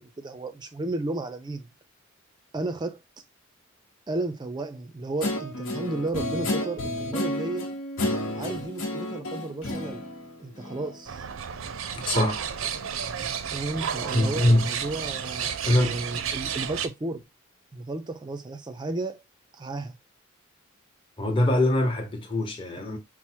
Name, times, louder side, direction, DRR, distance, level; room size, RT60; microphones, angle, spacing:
voice 1, 0.0-1.7 2.5-3.0 4.1-7.7 8.3-10.0 10.4-11.3 13.0-17.2 17.7-19.2 19.5-20.0, right 2 dB, 20° right, 0.4 m, -33 dB
Guitar, 5.2-11.0, left 1 dB, 80° left, 1.0 m, -31 dB
sound 1, 11.1-16.9, right 8 dB, 80° right, 0.5 m, -32 dB
voice 2, 12.0-12.4 14.1-14.7 15.6-16.0 21.2-23.0, left 1 dB, 25° left, 0.7 m, -23 dB
4.3 x 2.0 x 4.4 m
head